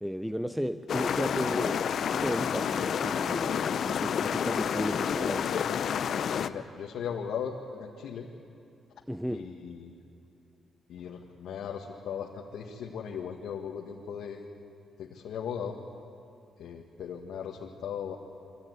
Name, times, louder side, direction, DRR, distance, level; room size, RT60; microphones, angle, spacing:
voice 1, 0.0-5.5 9.1-9.5, equal, ahead, 10 dB, 0.5 m, -34 dB
sound 1, 0.9-6.5, left 8 dB, 60° left, 0.6 m, -29 dB
voice 2, 6.0-8.3 9.3-9.9 10.9-14.5 15.0-15.8 16.6-18.1, left 7 dB, 80° left, -1 dB, 1.7 m, -38 dB
24.5 x 15.0 x 9.5 m, 2.7 s
cardioid pair, 120°, 0 cm